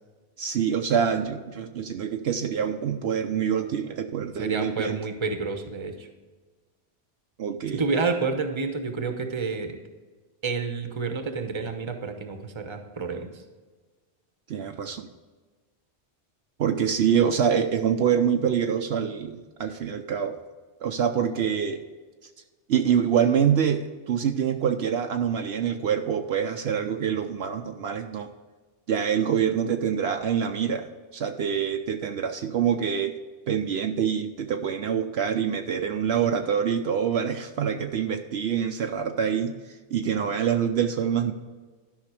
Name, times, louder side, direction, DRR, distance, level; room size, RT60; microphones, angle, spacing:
voice 1, 0.4-5.0 7.4-7.8 14.5-15.1 16.6-20.3 20.8-21.8 22.7-28.3 28.9-33.1 33.5-39.5 39.9-41.3, right 8 dB, 65° right, 5 dB, 0.9 m, -25 dB
voice 2, 4.4-6.1 7.7-9.8 10.4-13.4, right 4 dB, 25° right, 6 dB, 0.9 m, -29 dB
12.0 x 5.6 x 4.9 m, 1.3 s
omnidirectional pair, 1.2 m